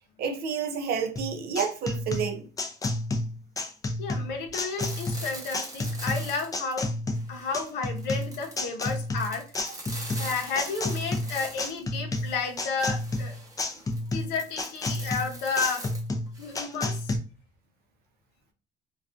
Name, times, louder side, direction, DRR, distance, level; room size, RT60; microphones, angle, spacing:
voice 1, 0.2-2.5, right 6 dB, 65° right, 0.5 m, -30 dB
sound 1, 1.2-17.2, left 2 dB, 20° left, 0.4 m, -31 dB
voice 2, 4.0-6.9 7.3-9.5 10.2-13.4 14.1-15.9 16.4-17.1, left 4 dB, 85° left, 0.7 m, -32 dB
sound 2, 4.8-6.9 7.1-11.8 12.1-16.6, right 1 dB, 20° right, 0.7 m, -43 dB
2.4 x 2.3 x 2.4 m
cardioid pair, 110°, 17 cm